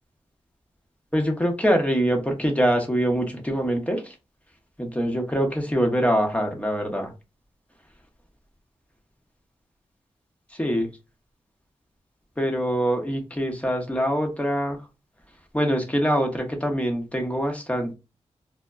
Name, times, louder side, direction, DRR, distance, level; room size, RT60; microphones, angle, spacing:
voice 1, 1.1-4.1 4.8-7.1 10.5-10.9 12.4-14.8 15.5-17.9, equal, 10° left, 0.9 m, -24 dB
2.2 x 2.0 x 3.4 m
cardioid pair, 60°, 12 cm